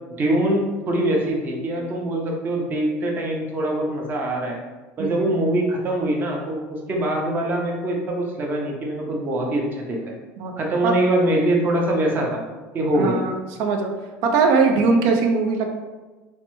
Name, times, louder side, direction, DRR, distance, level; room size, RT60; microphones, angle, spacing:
voice 1, 0.2-4.6 5.0-6.6 6.9-10.1 10.6-12.4 12.7-13.2, right 1 dB, 30° right, 0 dB, 0.6 m, -23 dB
voice 2, 5.0-5.3 10.4-10.5 10.8-10.9 12.9-13.9 14.2-15.7, right 4 dB, 70° right, 3 dB, 0.5 m, -20 dB
3.2 x 2.0 x 2.9 m, 1.2 s
cardioid pair, 135°, 6 cm